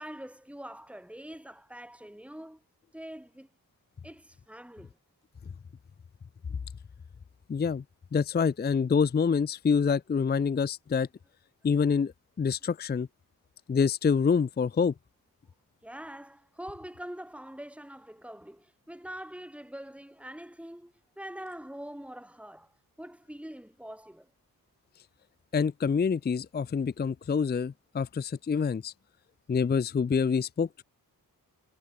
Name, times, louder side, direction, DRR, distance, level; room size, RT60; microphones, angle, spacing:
voice 1, 0.0-2.6 2.9-3.5 4.0-5.0 15.8-22.7 23.0-24.3, equal, 5° right, 5.1 m, -44 dB
voice 2, 7.5-7.8 8.1-11.1 11.6-12.1 12.4-13.1 13.7-14.9 25.5-28.9 29.5-30.8, left 6 dB, 25° left, 0.5 m, -26 dB
cardioid pair, 55°, 37 cm